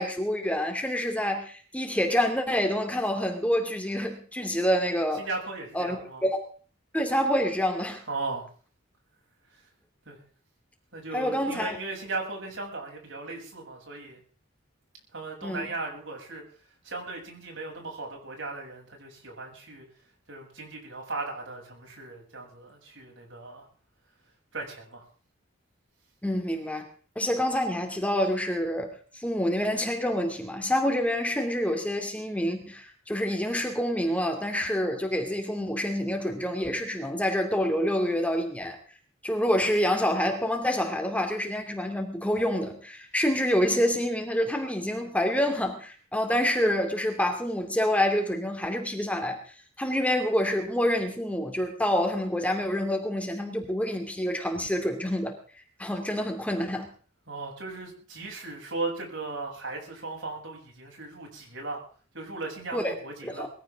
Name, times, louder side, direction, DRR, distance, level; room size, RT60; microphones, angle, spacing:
voice 1, 0.0-5.3 5.7-6.0 6.2-6.4 6.9-8.0 11.1-11.8 15.4-15.7 26.2-26.9 27.2-38.8 39.2-49.4 49.8-55.4 55.8-56.9 62.7-62.9 63.2-63.5, equal, 5° left, 4 dB, 2.7 m, -27 dB
voice 2, 5.2-6.2 8.1-8.5 10.1-10.2 10.9-14.2 15.1-16.5 16.8-19.9 20.3-23.7 24.5-25.0 57.3-61.8 62.1-63.5, right 3 dB, 75° right, 0 dB, 7.7 m, -37 dB
21.5 x 16.0 x 3.7 m, 0.42 s
head